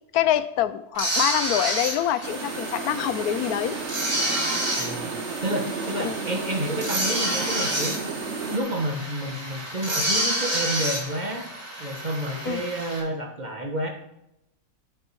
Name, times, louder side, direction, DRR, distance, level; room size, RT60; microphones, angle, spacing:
voice 1, 0.1-3.8 6.0-6.2 12.4-12.6, left 11 dB, 90° left, 13 dB, 1.2 m, -25 dB
sound 1, 0.9-13.0, right 1 dB, 85° right, 3.5 m, -29 dB
sound 2, 2.2-8.6, right 4 dB, 55° right, 1.1 m, -33 dB
voice 2, 4.7-8.0 8.5-11.4 11.8-13.9, right 1 dB, 30° right, 2 dB, 1.3 m, -30 dB
12.5 x 6.1 x 4.7 m, 0.84 s
omnidirectional pair, 1.5 m